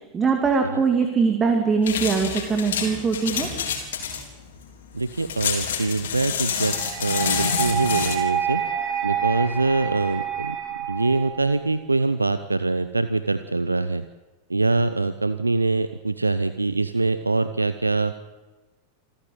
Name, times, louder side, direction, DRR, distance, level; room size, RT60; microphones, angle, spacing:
voice 1, 0.1-3.5, right 5 dB, 20° right, 4 dB, 2.5 m, -22 dB
sound 1, 1.8-8.1, left 7 dB, 60° left, 4.0 m, -28 dB
voice 2, 4.9-8.6 9.0-10.6 10.9-14.0 14.5-18.2, right 3 dB, 80° right, 13 dB, 0.7 m, -24 dB
sound 2, 6.6-11.6, right 8 dB, 40° right, 6.4 m, -28 dB
27.0 x 14.5 x 7.9 m, 1.2 s
figure-of-eight pair, 90°, 0 cm